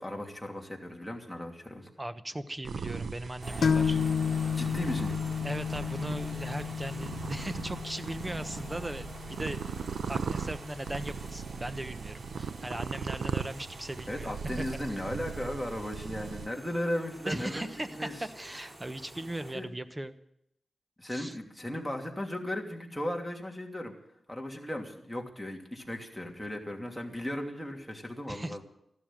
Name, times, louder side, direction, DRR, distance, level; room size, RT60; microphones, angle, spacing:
voice 1, 0.0-1.9 4.5-5.1 14.1-18.3 19.5-19.6 21.0-23.9 24.3-28.6, left 1 dB, 5° left, 1 dB, 2.9 m, -36 dB
voice 2, 2.0-4.0 5.4-9.6 10.1-14.6 14.9-15.0 17.3-20.1 21.1-21.4 28.3-28.6, right 1 dB, 20° right, 11 dB, 1.1 m, -38 dB
sound 1, 2.6-16.5, right 6 dB, 80° right, 0.7 m, -39 dB
sound 2, 3.4-19.5, right 1 dB, 40° right, 3.8 m, -48 dB
sound 3, 3.6-11.1, left 6 dB, 70° left, 1.0 m, -32 dB
14.5 x 12.5 x 7.6 m, 0.77 s
cardioid pair, 80°, 0 cm